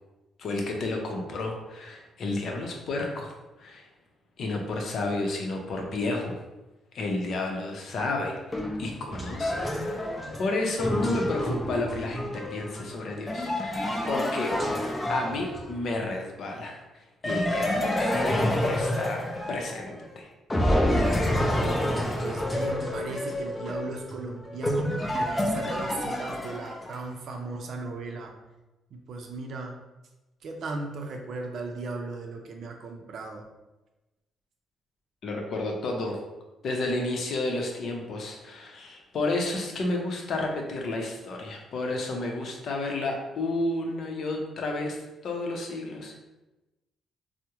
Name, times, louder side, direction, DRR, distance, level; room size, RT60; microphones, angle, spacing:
voice 1, 0.4-3.9 4.4-6.4 6.9-10.1 10.4-14.6 15.1-16.8 17.2-20.3 35.2-36.2 36.6-46.2, left 2 dB, 65° left, 1 dB, 0.6 m, -31 dB
sound 1, 8.5-15.9 17.2-20.1 20.5-27.0, left 1 dB, 20° left, 0.5 m, -28 dB
voice 2, 22.2-28.3 28.9-29.8 30.4-33.4, right 3 dB, 65° right, 3 dB, 0.5 m, -37 dB
3.5 x 2.1 x 2.9 m, 1.1 s
cardioid pair, 90°, 0 cm